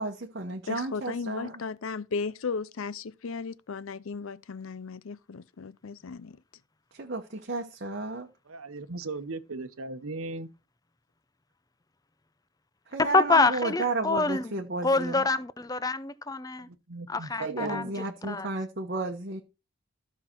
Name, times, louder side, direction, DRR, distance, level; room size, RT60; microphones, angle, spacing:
voice 1, 0.0-1.6 6.9-8.3 12.9-15.3 17.4-19.4, right 3 dB, 50° right, 1.0 m, -33 dB
voice 2, 0.7-6.4, left 5 dB, 70° left, 0.5 m, -35 dB
voice 3, 8.5-10.5 16.7-18.0, right 3 dB, 80° right, 1.0 m, -37 dB
voice 4, 13.0-14.4 14.8-16.7 17.1-17.9 18.3-18.5, left 3 dB, 15° left, 0.5 m, -26 dB
13.5 x 5.7 x 4.4 m
head